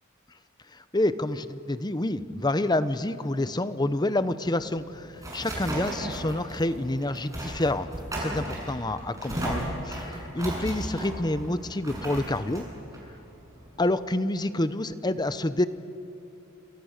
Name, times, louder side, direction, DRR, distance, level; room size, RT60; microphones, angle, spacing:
voice 1, 0.9-5.1 5.3-7.9 8.2-12.6 13.8-15.6, left 1 dB, 20° left, 13 dB, 0.8 m, -28 dB
sound 1, 4.6-13.9, right 1 dB, 15° right, 7.5 m, -35 dB
28.5 x 27.5 x 6.7 m, 3.0 s
head